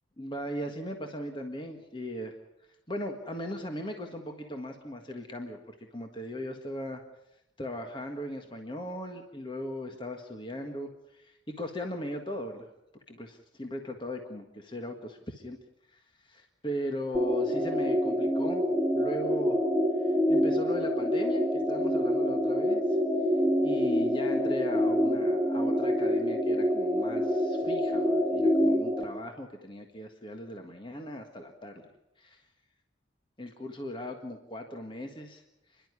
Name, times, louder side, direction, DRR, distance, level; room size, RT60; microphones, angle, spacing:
voice 1, 0.2-2.3 2.9-7.0 7.6-12.7 13.1-15.6 15.9-16.0 16.2-18.6 18.9-19.6 20.0-22.8 23.6-31.8 32.2-32.4 33.4-35.4, equal, 25° left, 4 dB, 1.7 m, -38 dB
sound 1, 17.1-29.0, equal, 5° right, 1.6 m, -26 dB
29.5 x 11.5 x 9.8 m, 0.88 s
head